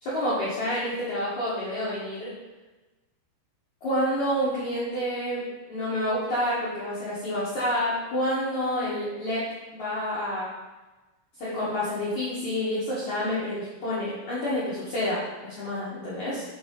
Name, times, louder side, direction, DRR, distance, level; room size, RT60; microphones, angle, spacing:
voice 1, 0.0-2.3 3.8-9.4 9.7-10.5 11.4-16.4, left 1 dB, 60° left, -10 dB, 2.1 m, -28 dB
6.3 x 4.1 x 5.4 m, 1.1 s
omnidirectional pair, 5.2 m